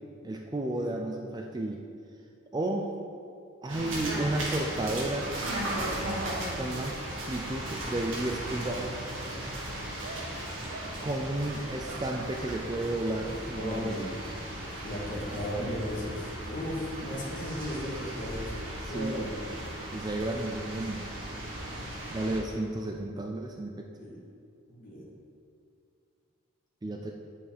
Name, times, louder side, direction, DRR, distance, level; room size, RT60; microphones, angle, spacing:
voice 1, 0.2-1.8 2.5-2.9 3.6-5.3 6.6-7.0 7.3-9.1 11.0-14.0 18.8-19.3 19.9-21.1 22.1-23.9 26.8-27.1, right 1 dB, 20° right, 2 dB, 0.4 m, -32 dB
sound 1, 3.7-22.4, right 1 dB, 60° right, 1.8 m, -36 dB
sound 2, 5.7-8.3 8.6-9.6 10.0-10.3 10.7-10.9 11.5-13.2 13.5-13.7 14.9-16.4, right 3 dB, 80° right, 1.3 m, -48 dB
voice 2, 13.6-14.1 14.8-18.6 18.9-19.4 24.0-24.2 24.7-25.1, equal, 40° left, -5 dB, 1.9 m, -36 dB
8.5 x 5.7 x 4.6 m, 2.4 s
head